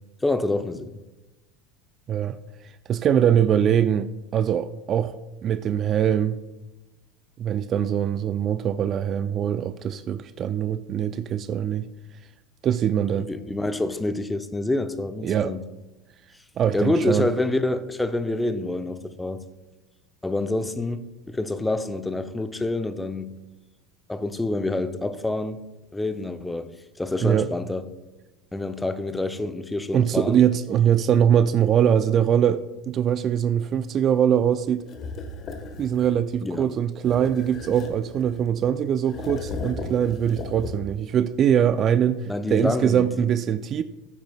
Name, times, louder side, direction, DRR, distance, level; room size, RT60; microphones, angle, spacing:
voice 1, 0.2-0.9 13.2-15.6 16.7-19.4 20.2-23.3 24.1-25.6 25.9-26.7 27.0-27.9 28.5-30.4 36.4-36.7 42.3-43.2, left 2 dB, 10° left, 0.7 m, -27 dB
voice 2, 2.9-5.2 5.4-6.4 7.4-11.9 12.6-13.3 15.2-15.5 16.6-17.3 27.2-27.5 29.9-34.8 35.8-43.8, right 9 dB, 40° right, 0.4 m, -22 dB
sound 1, 34.9-36.2 37.0-38.6 39.1-41.1, left 3 dB, 35° left, 1.4 m, -36 dB
14.5 x 8.9 x 2.3 m
figure-of-eight pair, 80°, 0 cm